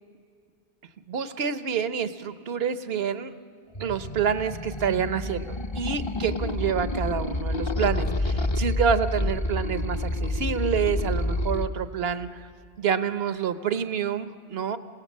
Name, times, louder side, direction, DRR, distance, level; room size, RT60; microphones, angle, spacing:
voice 1, 1.1-3.3 3.8-12.5 12.8-14.8, right 7 dB, 75° right, 11 dB, 1.1 m, -28 dB
sound 1, 3.7-11.6, left 2 dB, 30° left, 0.7 m, -28 dB
27.0 x 17.5 x 7.3 m, 2.3 s
omnidirectional pair, 1.0 m